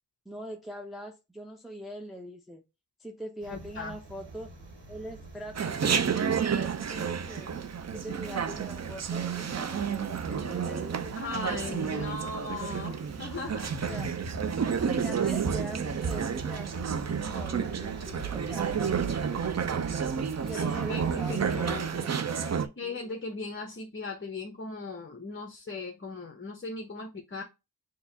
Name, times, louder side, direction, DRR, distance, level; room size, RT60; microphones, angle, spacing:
voice 1, 0.3-2.6 3.0-4.5 4.9-7.5 7.9-12.2 13.8-14.1 14.6-19.4 20.4-23.0, right 1 dB, ahead, 0.7 m, -43 dB
sound 1, 3.4-22.0, right 3 dB, 85° right, 2.1 m, -42 dB
voice 2, 3.5-4.0 11.1-14.0 20.5-21.9 22.8-27.4, left 3 dB, 30° left, 0.9 m, -38 dB
Chatter, 5.5-22.7, right 7 dB, 40° right, 0.5 m, -31 dB
6.2 x 2.9 x 2.7 m
wide cardioid pair, 95°, 42 cm